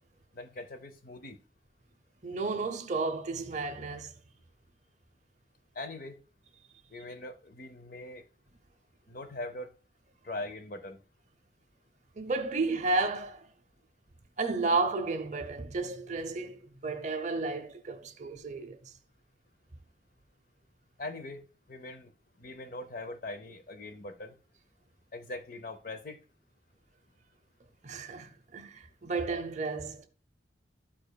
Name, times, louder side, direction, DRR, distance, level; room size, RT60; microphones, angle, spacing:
voice 1, 0.3-1.4 5.7-6.2 6.9-8.2 9.1-9.7 10.2-11.0 21.0-21.4 21.7-22.1 22.4-24.4 25.1-26.2, left 2 dB, 50° left, 0.6 m, -41 dB
voice 2, 2.2-4.1 12.2-13.5 14.4-18.9 27.8-30.1, right 3 dB, 40° right, 0.7 m, -32 dB
13.0 x 5.0 x 2.3 m
head